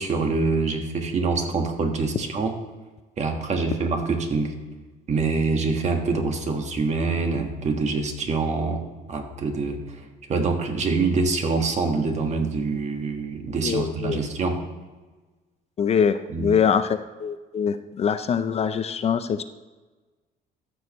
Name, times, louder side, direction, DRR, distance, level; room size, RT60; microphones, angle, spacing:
voice 1, 0.0-2.5 3.2-4.5 5.1-9.8 10.3-14.6 16.3-16.5, right 4 dB, 40° right, 4 dB, 1.5 m, -25 dB
voice 2, 13.6-14.2 15.8-19.4, left 7 dB, 40° left, 10 dB, 0.5 m, -24 dB
14.0 x 6.3 x 3.0 m, 1.2 s
cardioid pair, 110°, 17 cm